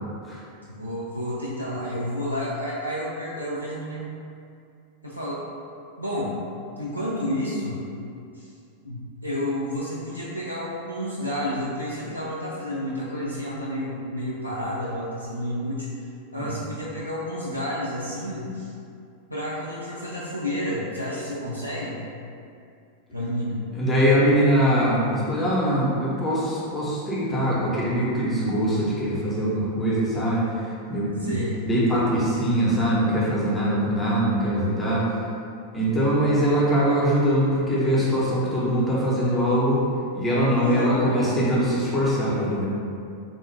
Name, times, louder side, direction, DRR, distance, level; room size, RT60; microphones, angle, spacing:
voice 1, 0.7-4.1 5.0-5.4 6.0-6.3 6.8-7.8 8.3-8.5 8.8-15.9 16.3-18.7 19.3-22.0 23.1-23.6 31.2-31.6 40.5-41.2, equal, 90° left, -7 dB, 0.4 m, -30 dB
voice 2, 23.8-30.5 30.9-31.3 31.6-35.0 35.7-39.8 40.1-42.7, equal, 15° left, -7 dB, 0.9 m, -22 dB
3.5 x 2.4 x 3.2 m, 2.5 s
figure-of-eight pair, 90°, 0 cm